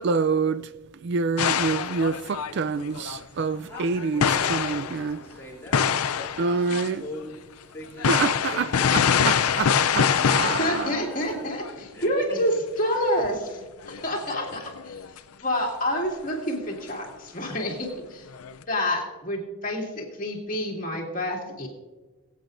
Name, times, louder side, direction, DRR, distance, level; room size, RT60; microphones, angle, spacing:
voice 1, 0.0-0.6 1.0-4.2 4.5-5.2 6.4-7.0 8.1-8.7 9.3-10.9, right 4 dB, 50° right, 0.3 m, -26 dB
sound 1, 1.4-5.1 5.7-6.9 7.2-7.3 8.0-11.3 11.6-11.7 12.0-12.1 12.8-13.0 13.2-13.5 13.8-15.2 16.9-17.0 18.4-18.6, left 7 dB, 80° left, 0.5 m, -25 dB
voice 2, 3.5-7.4 7.7-8.1 8.4-9.3 11.9-12.4, left 1 dB, 10° left, 2.8 m, -42 dB
voice 3, 10.4-12.5 12.8-15.0 15.4-18.3 18.7-21.7, left 1 dB, 35° left, 2.4 m, -28 dB
23.0 x 8.5 x 2.6 m
head